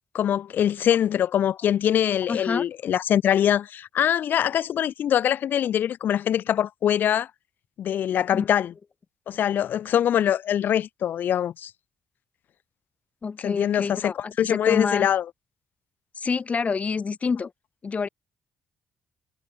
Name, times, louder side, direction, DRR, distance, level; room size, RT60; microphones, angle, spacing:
voice 1, 0.1-7.3 7.8-8.7 9.3-11.7 13.4-15.2, left 10 dB, 70° left, 2.8 m, -23 dB
voice 2, 2.3-2.6 8.3-8.5 13.2-15.1 16.2-17.5 17.8-18.1, left 5 dB, 40° left, 7.0 m, -27 dB
supercardioid pair, 60°, 3 cm